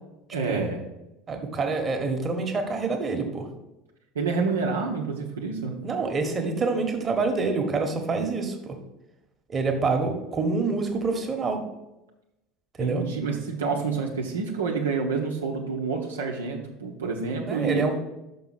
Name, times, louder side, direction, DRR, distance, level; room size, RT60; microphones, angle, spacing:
voice 1, 0.3-0.8 4.1-5.7 12.8-17.9, right 4 dB, 75° right, 0 dB, 0.9 m, -28 dB
voice 2, 1.3-3.5 5.8-8.8 9.5-11.6 12.8-13.0 17.5-18.0, right 4 dB, 30° right, 4 dB, 1.3 m, -26 dB
5.8 x 5.6 x 5.8 m, 0.94 s
figure-of-eight pair, 70°, 0 cm